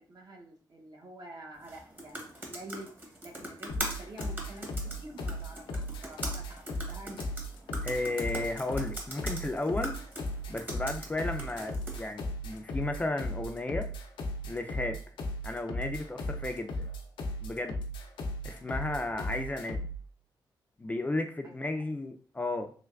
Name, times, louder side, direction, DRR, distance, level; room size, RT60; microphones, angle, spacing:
voice 1, 0.0-7.3 21.4-21.8, right 1 dB, 55° right, 1 dB, 0.8 m, -48 dB
sound 1, 1.6-12.1, right 1 dB, 25° right, 0.9 m, -42 dB
sound 2, 3.7-20.0, left 1 dB, 80° left, 0.5 m, -36 dB
voice 2, 7.8-10.0 10.5-13.9 14.4-15.0 15.4-16.9 17.4-17.8 18.4-19.9 20.8-22.7, left 2 dB, 20° left, 5 dB, 0.3 m, -34 dB
3.3 x 3.0 x 2.3 m, 0.42 s
cardioid pair, 85°, 8 cm